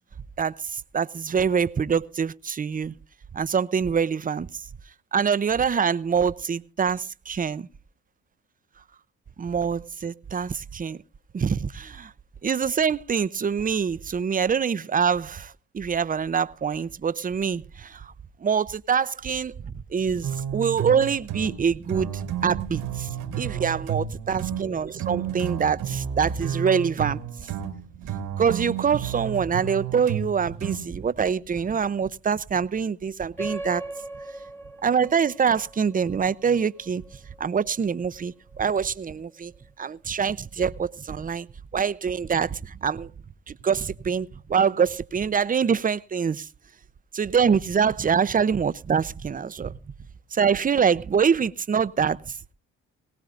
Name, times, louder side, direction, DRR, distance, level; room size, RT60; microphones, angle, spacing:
voice 1, 0.4-2.9 3.3-4.5 5.1-7.7 9.4-11.0 11.3-12.1 12.4-18.1 18.4-19.5 19.9-27.5 28.4-33.8 34.8-37.0 37.4-39.5 39.8-41.5 41.7-43.1 43.5-46.5 47.1-49.7 50.3-52.3, right 6 dB, 25° right, 0.6 m, -25 dB
sound 1, 20.2-31.1, right 9 dB, 85° right, 2.2 m, -32 dB
sound 2, 33.4-38.3, right 1 dB, 5° left, 1.0 m, -39 dB
19.5 x 18.0 x 2.5 m
supercardioid pair, 65°, 34 cm